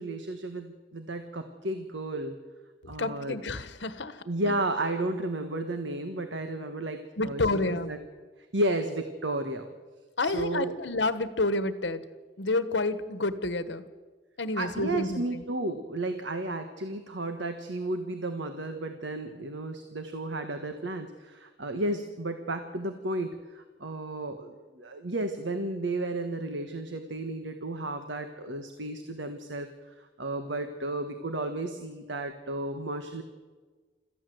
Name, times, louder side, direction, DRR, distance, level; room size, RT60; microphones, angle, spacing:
voice 1, 0.0-2.4 2.9-3.4 4.3-8.0 8.5-9.7 10.2-10.7 14.6-29.7 30.0-33.2, right 2 dB, 75° right, 7 dB, 1.5 m, -33 dB
voice 2, 2.8-4.5 7.2-7.9 10.2-12.0 12.4-13.8 14.4-15.4, left 2 dB, 70° left, 13 dB, 1.3 m, -29 dB
26.0 x 14.5 x 7.9 m, 1.4 s
head